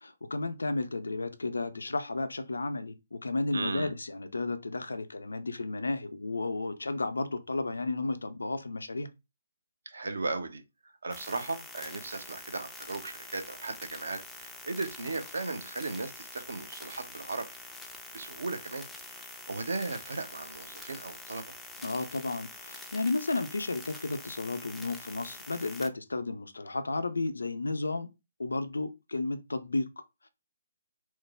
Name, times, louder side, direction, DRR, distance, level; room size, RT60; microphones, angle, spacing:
voice 1, 0.0-9.1 21.8-28.1 28.4-29.9, left 3 dB, 70° left, 0.5 m, -33 dB
voice 2, 3.5-3.9 9.9-17.5 18.1-18.8 19.5-21.5, right 3 dB, 65° right, 0.6 m, -36 dB
sound 1, 11.1-25.9, left 2 dB, 5° left, 0.4 m, -46 dB
3.1 x 2.0 x 3.3 m
figure-of-eight pair, 135°, 0 cm